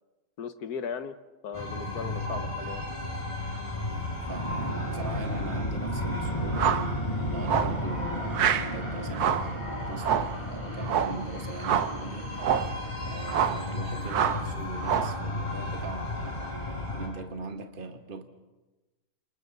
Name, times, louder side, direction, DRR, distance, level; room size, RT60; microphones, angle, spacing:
voice 1, 0.4-1.2 1.4-2.8, left 6 dB, 70° left, 1.6 m, -37 dB
sound 1, 1.5-17.1, left 1 dB, 20° left, 5.0 m, -33 dB
voice 2, 3.9-12.4 13.0-16.6 16.9-18.2, right 3 dB, 35° right, 1.5 m, -41 dB
sound 2, 6.5-6.9 7.4-7.8 8.3-8.7 9.1-9.5 10.0-10.4 10.8-11.2 11.6-12.0 12.4-12.7 13.3-13.6 14.1-14.5 14.8-15.2, right 8 dB, 70° right, 1.4 m, -26 dB
28.5 x 28.0 x 4.0 m
omnidirectional pair, 1.8 m